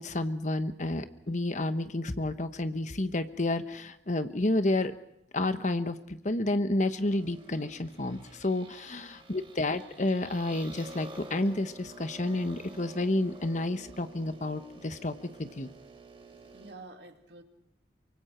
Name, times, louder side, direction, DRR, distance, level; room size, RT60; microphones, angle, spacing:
voice 1, 0.0-4.9 5.3-15.7, left 2 dB, 40° left, 10 dB, 1.2 m, -30 dB
sound 1, 7.0-16.7, right 2 dB, 30° right, 3.2 m, -50 dB
voice 2, 9.1-9.5 16.2-17.4, right 3 dB, 65° right, 5 dB, 2.3 m, -50 dB
24.5 x 23.5 x 4.5 m, 0.80 s
head